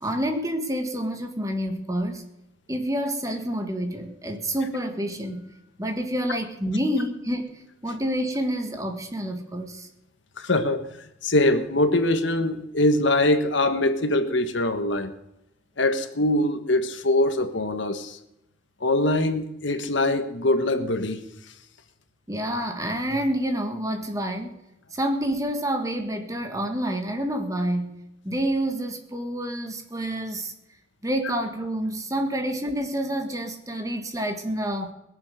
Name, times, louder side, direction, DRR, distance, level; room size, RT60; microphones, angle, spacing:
voice 1, 0.0-2.2 2.7-5.4 5.8-9.9 22.3-24.5 24.9-30.5 31.0-34.9, right 1 dB, 15° right, 5 dB, 1.6 m, -28 dB
voice 2, 10.4-10.8 11.2-15.1 15.8-18.2 18.8-21.2, left 1 dB, 70° left, 8 dB, 1.4 m, -23 dB
21.0 x 7.4 x 6.6 m, 0.86 s
head